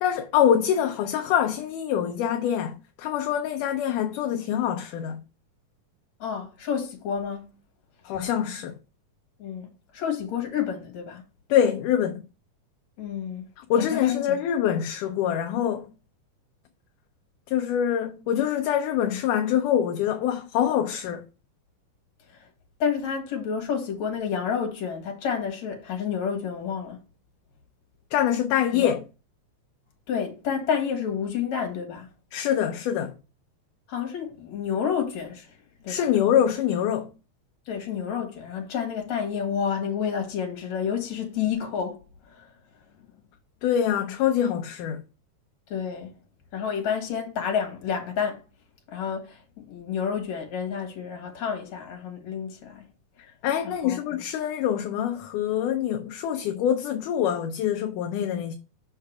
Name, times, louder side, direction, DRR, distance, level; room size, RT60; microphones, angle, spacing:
voice 1, 0.0-5.2 8.1-8.8 11.5-12.2 13.6-15.9 17.5-21.2 28.1-29.0 32.3-33.2 35.9-37.1 43.6-45.0 53.4-58.6, left 9 dB, 80° left, 2.1 m, -25 dB
voice 2, 6.2-7.5 9.4-9.7 9.9-11.2 13.0-13.4 13.8-14.4 22.3-22.4 22.8-27.0 28.7-28.9 30.1-32.1 33.9-35.6 35.8-36.1 37.7-42.5 45.7-46.1 46.5-48.4 48.9-52.9 53.6-54.2, left 7 dB, 60° left, 2.8 m, -30 dB
5.8 x 5.8 x 4.6 m
omnidirectional pair, 3.7 m